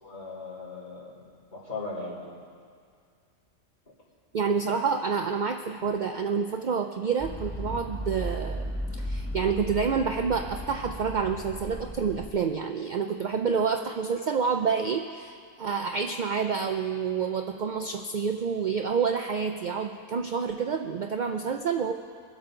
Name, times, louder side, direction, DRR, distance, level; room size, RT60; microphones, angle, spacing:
voice 1, 0.0-2.4, left 3 dB, 35° left, -7 dB, 3.5 m, -38 dB
voice 2, 4.3-21.9, right 6 dB, 65° right, 5 dB, 0.4 m, -28 dB
sound 1, 7.2-12.3, equal, 10° left, 0.6 m, -35 dB
24.0 x 8.2 x 3.8 m, 2.2 s
omnidirectional pair, 1.4 m